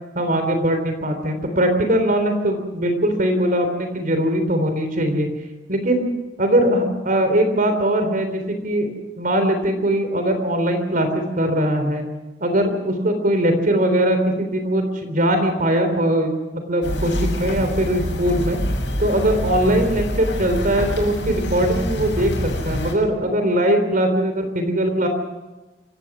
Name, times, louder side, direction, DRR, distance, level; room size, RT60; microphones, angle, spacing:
voice 1, 0.2-5.3 5.7-6.1 6.4-8.9 9.2-12.0 12.4-18.6 19.0-25.1, right 1 dB, 50° right, 7 dB, 3.6 m, -20 dB
sound 1, 16.8-22.9, left 1 dB, 80° left, 7.0 m, -26 dB
26.5 x 16.5 x 6.2 m, 1.1 s
head